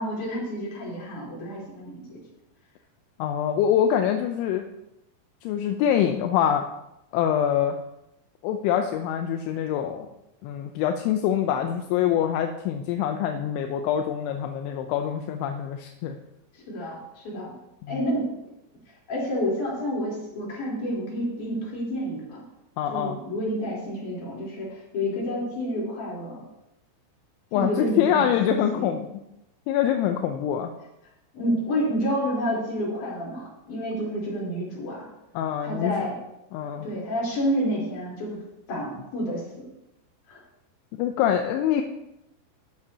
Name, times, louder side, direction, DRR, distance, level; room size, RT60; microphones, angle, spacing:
voice 1, 0.0-2.2 16.5-17.5 17.9-18.3 19.1-22.4 22.9-26.4 27.5-29.0 31.3-35.1 35.6-36.2 36.8-38.4 38.7-39.7 40.3-40.4, equal, 45° left, -4 dB, 4.9 m, -29 dB
voice 2, 3.2-4.6 5.4-6.7 7.1-7.8 8.4-10.1 10.4-16.1 17.8-18.0 22.8-23.2 27.5-29.0 29.7-30.7 35.4-36.1 36.5-36.9 41.0-41.8, left 9 dB, 85° left, 5 dB, 3.0 m, -25 dB
12.5 x 12.5 x 2.9 m, 0.87 s
omnidirectional pair, 5.6 m